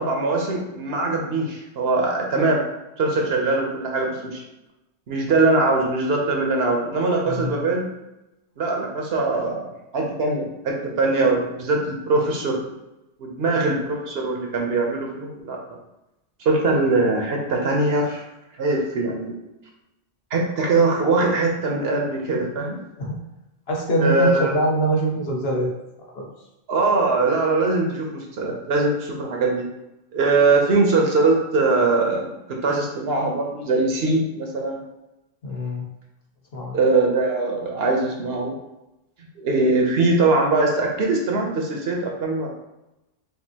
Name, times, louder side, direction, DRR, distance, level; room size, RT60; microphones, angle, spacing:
voice 1, 0.0-2.6 3.0-4.4 5.1-7.8 8.6-12.6 13.2-15.8 16.4-18.2 18.6-19.4 20.3-22.8 24.0-24.5 26.7-28.1 28.4-29.7 30.1-34.8 36.7-38.5 39.4-42.5, right 3 dB, 65° right, 0 dB, 0.9 m, -22 dB
voice 2, 7.2-7.6 23.0-23.1 23.7-25.7 26.1-26.3 35.4-35.8 36.5-36.8, right 2 dB, 65° left, -2 dB, 1.1 m, -23 dB
5.3 x 2.6 x 2.8 m, 0.93 s
omnidirectional pair, 1.2 m